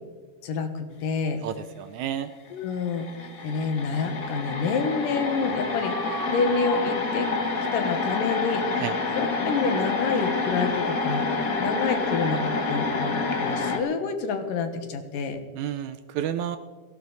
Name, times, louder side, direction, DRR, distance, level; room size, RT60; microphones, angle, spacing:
voice 1, 0.4-1.4 2.5-7.3 7.7-8.8 9.2-11.3 11.6-15.4, left 5 dB, 90° left, 7 dB, 3.1 m, -28 dB
voice 2, 1.4-2.3 8.8-8.9 15.6-16.6, right 10 dB, 75° right, 11 dB, 1.8 m, -30 dB
sound 1, 2.5-2.6 2.8-13.8, left 3 dB, 45° left, 1.1 m, -28 dB
sound 2, 5.8-9.7, right 2 dB, 50° right, 2.9 m, -40 dB
17.0 x 16.5 x 4.1 m, 1.5 s
omnidirectional pair, 3.8 m